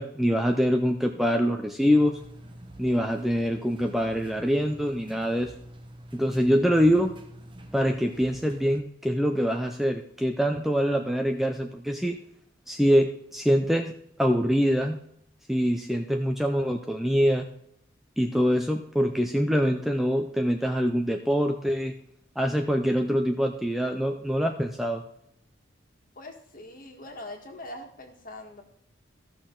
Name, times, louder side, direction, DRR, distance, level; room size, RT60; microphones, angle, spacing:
voice 1, 0.0-2.2 2.8-5.5 6.1-7.1 7.7-12.2 12.7-13.9 14.2-15.0 15.5-17.5 18.2-21.9 22.4-25.0, equal, ahead, 3 dB, 0.5 m, -24 dB
sound 1, 1.8-8.8, right 1 dB, 25° right, 0.9 m, -46 dB
voice 2, 26.1-28.6, left 1 dB, 45° left, 3 dB, 1.8 m, -42 dB
15.0 x 6.3 x 3.9 m, 0.71 s
head